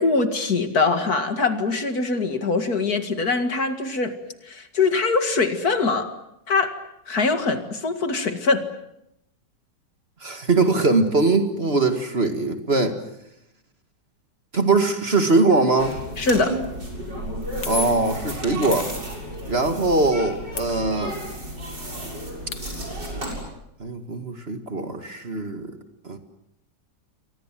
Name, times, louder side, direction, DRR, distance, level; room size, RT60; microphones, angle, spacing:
voice 1, 0.0-4.1 4.5-6.1 6.5-6.8 7.1-8.7 16.2-16.6, left 3 dB, 60° left, 7 dB, 2.5 m, -22 dB
voice 2, 10.2-13.0 14.5-16.0 17.7-18.9 19.4-21.2 23.8-25.7 26.0-26.2, right 3 dB, 35° right, 6 dB, 2.3 m, -21 dB
sound 1, 15.8-23.4, right 1 dB, 75° right, 7.7 m, -33 dB
sound 2, 16.4-16.6 17.6-18.2 18.7-19.6 20.6-21.4 21.7-21.8 22.1-23.0, left 6 dB, 90° left, 2.5 m, -35 dB
29.5 x 24.0 x 7.6 m, 0.80 s
omnidirectional pair, 1.9 m